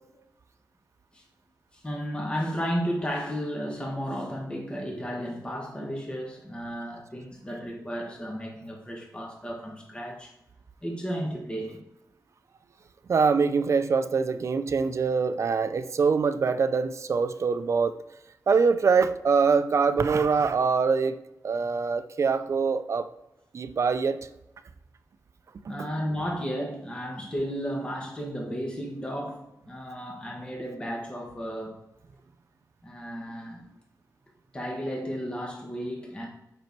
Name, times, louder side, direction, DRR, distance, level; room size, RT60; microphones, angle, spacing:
voice 1, 1.7-10.3 10.8-11.8 25.7-31.8 32.8-33.7 34.5-36.3, equal, 15° left, 0 dB, 1.4 m, -33 dB
voice 2, 13.1-18.0 18.5-21.2 21.4-23.1 23.5-24.2 25.6-25.7, right 5 dB, 50° right, 11 dB, 0.5 m, -24 dB
7.9 x 5.5 x 4.6 m, 0.88 s
wide cardioid pair, 155°, 6 cm